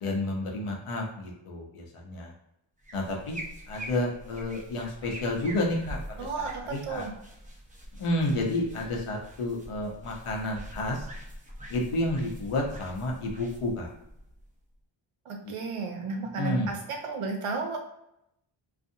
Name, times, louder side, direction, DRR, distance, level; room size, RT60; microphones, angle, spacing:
voice 1, 0.0-2.3 2.9-3.4 3.7-7.0 7.9-11.1 11.7-13.9 15.4-15.5 16.4-16.7, left 1 dB, 85° left, 0 dB, 0.8 m, -30 dB
sound 1, 2.8-14.7, equal, 20° right, 0.4 m, -44 dB
voice 2, 6.2-7.1 15.3-17.8, right 4 dB, 90° right, 3 dB, 0.7 m, -33 dB
2.5 x 2.4 x 2.6 m, 0.81 s
wide cardioid pair, 160°, 49 cm